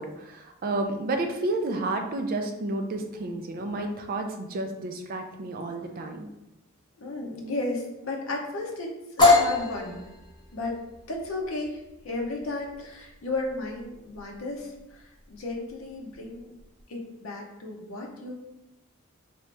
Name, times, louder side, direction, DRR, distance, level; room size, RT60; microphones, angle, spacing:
voice 1, 0.0-6.3, right 2 dB, 45° right, 5 dB, 0.4 m, -31 dB
voice 2, 7.0-10.0 10.5-10.8 11.1-16.5 16.9-18.3, left 2 dB, 70° left, 0 dB, 0.6 m, -34 dB
sound 1, 9.2-16.8, left 3 dB, 20° left, 0.9 m, -27 dB
3.0 x 2.8 x 3.2 m, 0.93 s
head